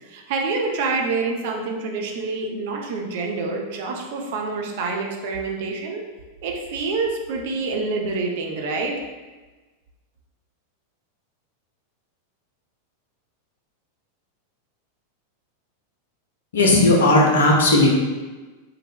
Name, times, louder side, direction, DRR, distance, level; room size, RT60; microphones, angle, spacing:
voice 1, 0.0-6.0 6.4-9.0, right 3 dB, 50° right, 1 dB, 0.5 m, -27 dB
voice 2, 16.5-17.9, left 2 dB, 65° left, -1 dB, 0.7 m, -16 dB
3.7 x 2.3 x 3.4 m, 1.3 s
figure-of-eight pair, 90°, 0 cm